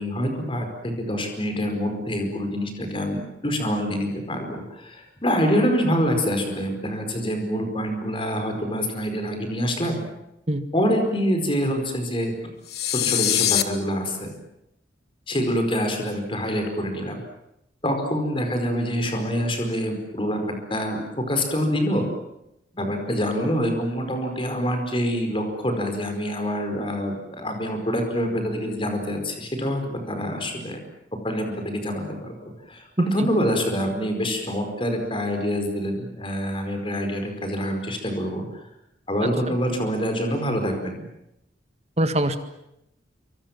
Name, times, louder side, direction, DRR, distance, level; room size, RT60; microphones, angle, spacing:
voice 1, 0.0-10.0 10.7-12.3 12.9-14.3 15.3-17.2 17.8-22.0 22.7-30.8 31.2-32.4 32.7-38.6 39.1-41.0, equal, 30° left, 5 dB, 4.8 m, -26 dB
sound 1, 12.7-13.6, left 12 dB, 55° left, 1.7 m, -22 dB
voice 2, 33.0-33.3 39.5-39.6 42.0-42.4, right 1 dB, 35° right, 9 dB, 1.9 m, -23 dB
28.0 x 24.5 x 7.5 m, 0.85 s
head